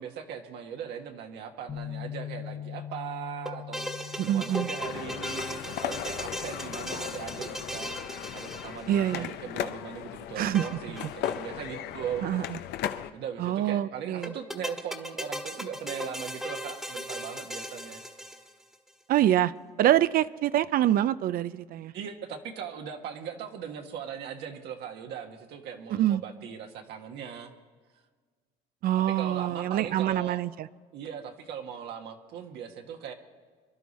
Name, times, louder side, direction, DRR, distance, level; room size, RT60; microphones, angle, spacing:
voice 1, 0.0-12.3 13.1-18.0 21.9-27.5 29.0-30.4 30.9-33.1, right 8 dB, 80° right, 3 dB, 1.5 m, -39 dB
Bass guitar, 1.7-7.9, left 10 dB, 40° left, 1.2 m, -43 dB
sound 1, 3.4-9.2 10.5-11.4 11.6-11.7 11.9-12.0 14.2-18.7, equal, ahead, 1.4 m, -37 dB
voice 2, 4.2-4.7 8.9-9.3 10.4-10.6 12.2-12.4 13.4-14.3 19.1-19.5 19.8-21.9 25.9-26.2 28.8-30.7, right 12 dB, 60° right, 16 dB, 0.4 m, -25 dB
sound 2, 4.8-13.1, left 11 dB, 75° left, 0.7 m, -37 dB
26.0 x 11.5 x 4.2 m, 1.5 s
cardioid pair, 110°, 17 cm